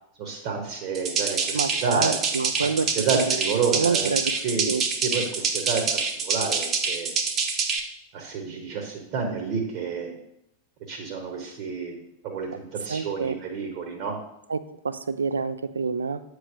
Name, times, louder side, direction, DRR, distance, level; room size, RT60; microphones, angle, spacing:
voice 1, 0.2-2.2 3.0-4.1 4.4-7.1 8.1-10.1 10.9-11.9 12.2-14.2, right 5 dB, 45° right, 1 dB, 1.1 m, -29 dB
sound 1, 0.9-7.8, right 5 dB, 30° right, 0.8 m, -26 dB
voice 2, 1.5-3.3 3.7-4.3 4.6-4.8 12.5-12.6 12.9-13.4 14.5-16.2, right 5 dB, 75° right, 12 dB, 0.4 m, -27 dB
8.0 x 3.2 x 4.7 m, 0.81 s
figure-of-eight pair, 90°, 0 cm